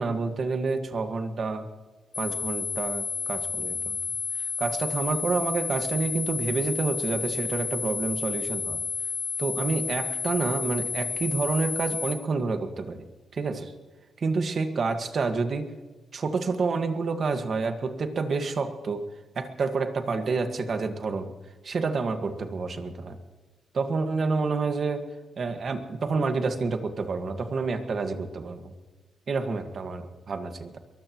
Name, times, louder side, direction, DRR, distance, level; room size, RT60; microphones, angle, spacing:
voice 1, 0.0-1.7 2.2-4.0 4.6-8.8 9.4-13.1 13.3-13.7 14.2-15.7 16.1-19.0 19.3-21.3 21.6-23.2 23.7-25.0 25.4-28.7 29.3-30.8, right 4 dB, 50° right, 7 dB, 1.6 m, -28 dB
sound 1, 2.1-12.1, left 5 dB, 40° left, 5.1 m, -31 dB
22.5 x 20.5 x 3.0 m, 1.3 s
wide cardioid pair, 125°, 0 cm